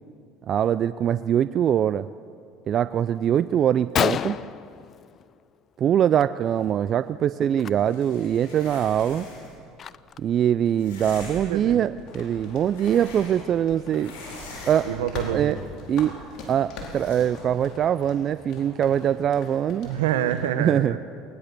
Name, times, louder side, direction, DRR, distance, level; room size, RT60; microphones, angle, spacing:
voice 1, 0.5-2.1 2.7-4.4 5.8-9.3 10.2-14.1 14.7-14.9 15.3-15.6 15.9-16.2 16.5-19.9 20.6-21.0, right 9 dB, 45° right, 14 dB, 0.4 m, -23 dB
Gunshot gunfire, 3.3-3.4 3.7-3.8 4.0-5.6 5.9-6.2 6.5-6.7 7.5-7.7 8.2-8.3 8.8-10.4, left 8 dB, 40° left, 0.5 m, -29 dB
sound 1, 7.7-9.6 10.8-11.6 12.3-13.6 13.9-15.1 16.8-17.2, left 2 dB, 85° left, 7.1 m, -42 dB
sound 2, 11.7-20.4, left 3 dB, 60° left, 4.5 m, -42 dB
voice 2, 14.8-15.6 19.8-21.0, right 10 dB, 85° right, 10 dB, 1.3 m, -27 dB
20.5 x 19.5 x 6.8 m, 2.3 s
supercardioid pair, 85°, 0 cm